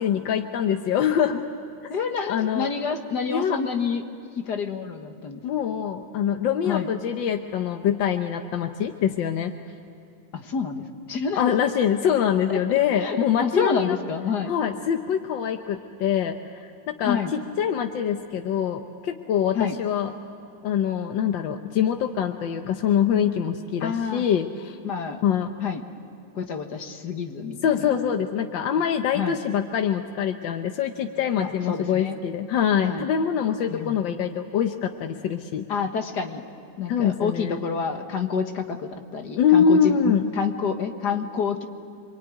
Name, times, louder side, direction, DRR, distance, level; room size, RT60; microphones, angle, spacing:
voice 1, 0.0-1.4 2.3-2.7 3.3-3.6 5.4-9.5 11.4-14.0 14.5-20.1 20.6-24.8 25.2-25.5 27.6-35.7 36.9-37.6 39.4-40.3, left 8 dB, 90° left, 6 dB, 1.6 m, -24 dB
voice 2, 1.9-4.0 4.5-5.4 6.7-6.9 10.3-11.4 13.0-14.5 17.1-17.3 19.5-19.8 23.8-24.3 24.8-25.2 25.6-25.8 26.4-28.0 29.1-29.4 31.4-32.2 32.8-33.1 33.7-34.0 35.7-36.4 36.8-41.6, left 6 dB, 65° left, 5 dB, 2.1 m, -28 dB
27.5 x 23.5 x 9.3 m, 2.6 s
omnidirectional pair, 2.0 m